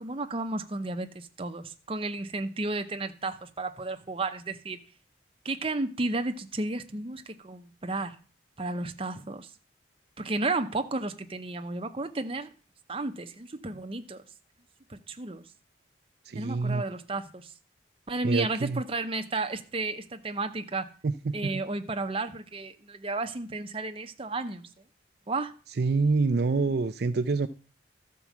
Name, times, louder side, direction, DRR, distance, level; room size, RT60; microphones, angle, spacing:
voice 1, 0.0-4.8 5.4-8.2 8.6-9.5 10.2-12.5 12.9-14.2 14.9-15.4 16.3-17.5 18.1-20.9 21.3-24.7 25.3-25.5, right 2 dB, 30° right, 0.7 m, -33 dB
voice 2, 16.3-16.8 18.2-18.8 21.3-21.4 25.8-27.5, right 3 dB, 60° right, 0.5 m, -26 dB
13.0 x 4.6 x 7.2 m
head